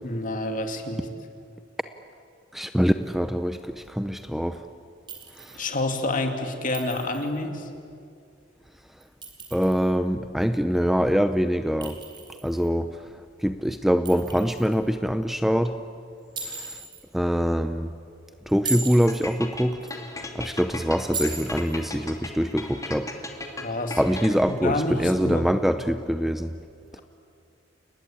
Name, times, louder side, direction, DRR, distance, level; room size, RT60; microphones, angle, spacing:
voice 1, 0.0-1.1 5.5-7.7 23.6-25.4, left 2 dB, 45° left, 5 dB, 2.6 m, -28 dB
voice 2, 2.5-4.6 9.5-12.0 12.4-12.9 13.4-15.7 17.1-17.9 18.5-19.8 20.3-23.1 24.0-26.5, equal, ahead, 9 dB, 0.7 m, -24 dB
Chink clink, 5.1-5.7 6.7-7.4 9.0-9.9 11.8-12.7 14.1-14.8 16.4-17.0 18.5-19.3 21.1-21.8, right 3 dB, 25° right, 4.1 m, -36 dB
sound 1, 19.1-24.6, left 2 dB, 20° left, 2.6 m, -37 dB
30.0 x 19.5 x 8.7 m, 2.3 s
head